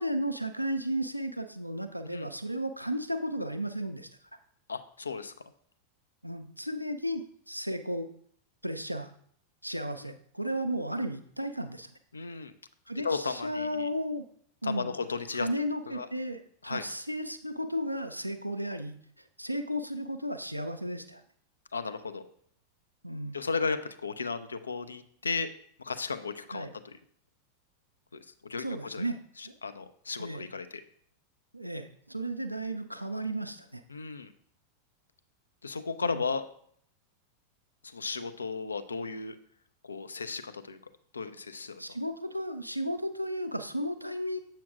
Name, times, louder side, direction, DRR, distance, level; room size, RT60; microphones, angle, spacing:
voice 1, 0.0-4.1 6.2-8.1 8.6-9.1 9.6-11.9 12.9-14.3 14.6-14.9 15.3-19.0 19.4-21.2 23.0-23.4 26.5-26.7 28.6-29.2 29.4-29.6 30.2-30.5 31.5-33.8 36.0-36.2 41.8-44.4, equal, 90° right, 8 dB, 0.4 m, -34 dB
voice 2, 4.7-5.3 10.0-10.1 12.1-12.5 13.0-13.9 14.6-15.5 15.9-16.1 16.6-16.8 21.7-22.2 23.3-25.5 25.8-26.9 28.1-29.1 29.4-30.8 33.9-34.3 35.6-36.4 37.8-39.4 39.8-40.8 41.1-42.0, left 4 dB, 75° left, 10 dB, 0.4 m, -35 dB
7.5 x 5.7 x 2.4 m, 0.64 s
figure-of-eight pair, 90°, 0 cm